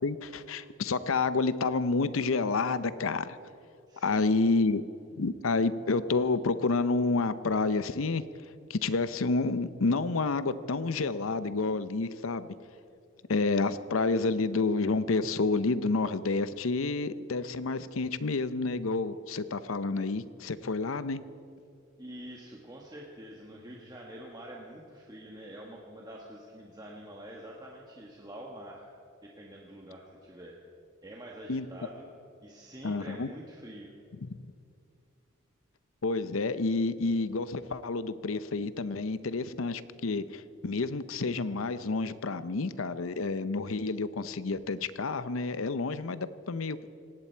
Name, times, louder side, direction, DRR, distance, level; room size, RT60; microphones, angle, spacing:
voice 1, 0.0-3.4 4.0-4.8 5.2-8.2 8.7-12.5 13.3-21.2 31.5-31.7 32.8-33.3 34.2-34.5 36.0-46.8, left 3 dB, 85° left, 14 dB, 0.7 m, -29 dB
voice 2, 3.9-4.5 22.0-28.9 29.2-30.5 31.0-32.1 32.4-33.9, right 1 dB, 20° right, -2 dB, 1.4 m, -46 dB
19.0 x 17.0 x 4.5 m, 2.4 s
head